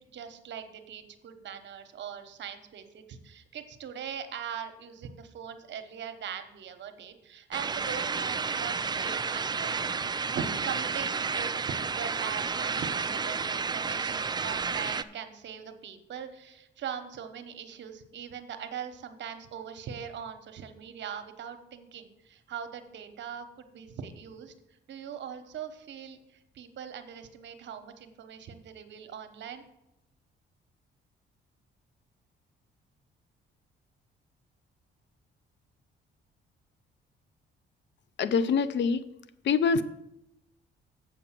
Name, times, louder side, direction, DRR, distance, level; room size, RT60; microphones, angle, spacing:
voice 1, 0.0-29.6, right 8 dB, 65° right, 8 dB, 1.1 m, -41 dB
sound 1, 7.5-15.0, right 5 dB, 20° right, 0.4 m, -31 dB
voice 2, 38.2-39.0 39.4-39.8, left 5 dB, 65° left, 14 dB, 0.6 m, -24 dB
7.9 x 5.3 x 7.4 m, 0.85 s
cardioid pair, 90°, 20 cm